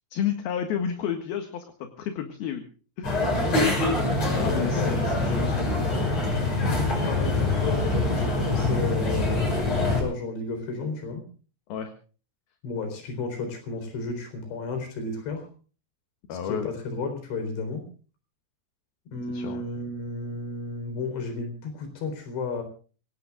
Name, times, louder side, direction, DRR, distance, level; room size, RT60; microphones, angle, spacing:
voice 1, 0.1-2.6 3.0-3.3 4.3-6.0 11.7-11.9 16.3-16.7 19.3-19.6, left 8 dB, 70° left, 6 dB, 3.3 m, -31 dB
sound 1, 3.0-10.0, left 2 dB, 40° left, 7.4 m, -24 dB
voice 2, 4.4-5.0 6.7-11.2 12.6-15.5 16.3-17.8 19.1-22.6, left 3 dB, 85° left, 7 dB, 6.4 m, -33 dB
26.5 x 18.0 x 2.4 m, 0.39 s
omnidirectional pair, 4.9 m